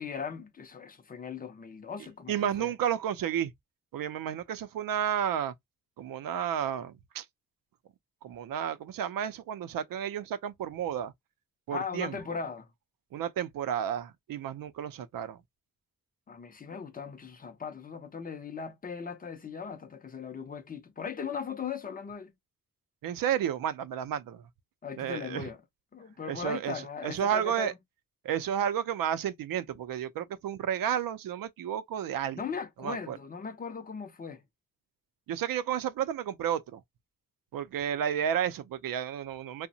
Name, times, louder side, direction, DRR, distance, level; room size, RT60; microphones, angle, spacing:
voice 1, 0.0-2.7 11.7-12.7 16.3-22.3 24.8-25.6 25.9-27.7 32.4-34.4, left 6 dB, 25° left, 0.4 m, -38 dB
voice 2, 2.3-3.5 3.9-5.5 6.0-7.3 8.2-11.1 11.7-12.2 13.1-15.4 23.0-24.4 25.0-25.5 26.3-27.7 28.2-32.4 32.8-33.2 35.3-36.8 37.5-39.7, right 9 dB, 85° right, 0.5 m, -32 dB
2.8 x 2.1 x 2.6 m
wide cardioid pair, 160°, 33 cm